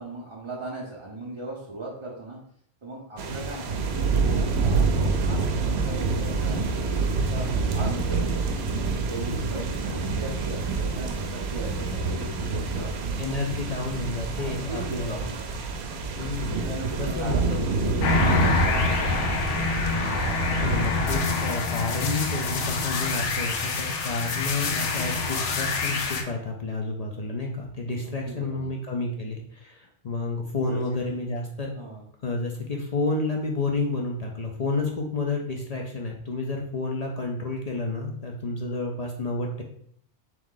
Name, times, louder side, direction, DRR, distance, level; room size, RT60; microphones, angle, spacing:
voice 1, 0.0-2.4 2.8-4.9 5.2-7.5 7.7-8.3 9.1-13.2 14.3-15.4 16.5-19.3 28.0-28.7 30.6-30.8 31.1-31.2 31.7-32.0, right 2 dB, 35° right, -4 dB, 0.6 m, -38 dB
sound 1, 3.2-21.2, right 4 dB, 70° right, 0.8 m, -27 dB
voice 2, 13.2-15.5 16.2-17.6 20.6-31.7 32.2-39.6, left 3 dB, 50° left, 0 dB, 0.5 m, -30 dB
sound 2, 18.0-26.2, left 4 dB, 80° left, 1.0 m, -26 dB
3.6 x 3.0 x 3.7 m, 0.66 s
omnidirectional pair, 1.2 m